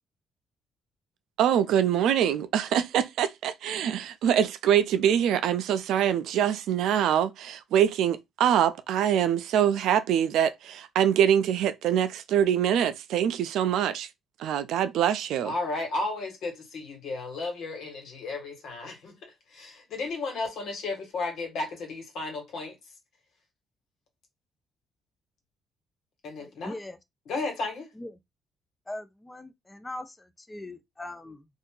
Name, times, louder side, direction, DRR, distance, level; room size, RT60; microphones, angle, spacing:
voice 1, 1.4-14.1 14.4-15.5, right 9 dB, 80° right, 0.4 m, -24 dB
voice 2, 15.4-18.9 19.9-22.7 26.2-26.7 27.3-27.8, left 3 dB, 70° left, 1.6 m, -33 dB
voice 3, 26.4-27.0 28.0-28.1 28.9-31.5, left 1 dB, 20° left, 0.6 m, -40 dB
2.6 x 2.4 x 3.7 m
supercardioid pair, 70°, 0 cm